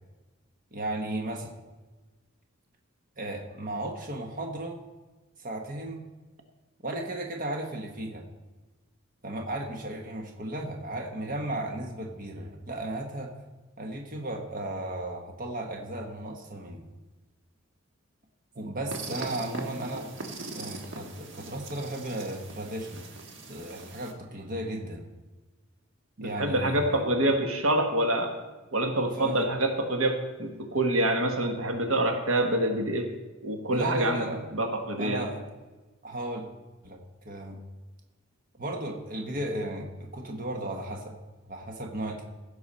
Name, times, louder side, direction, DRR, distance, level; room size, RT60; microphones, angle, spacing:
voice 1, 0.7-1.5 3.2-4.8 5.4-6.0 6.8-8.2 9.2-13.3 13.8-16.9 18.5-20.1 20.5-23.1 23.5-25.1 26.2-27.0 29.1-29.5 33.7-34.5 35.0-35.4 36.0-36.5 36.8-37.6 38.5-41.1 41.5-42.3, right 1 dB, 45° right, 2 dB, 1.3 m, -35 dB
sound 1, 18.9-24.1, right 3 dB, 60° right, 1.4 m, -41 dB
voice 2, 26.2-28.3 28.7-33.1 33.4-34.2 34.5-35.2, right 1 dB, 80° right, 4 dB, 1.3 m, -26 dB
16.0 x 6.8 x 4.2 m, 1.2 s
head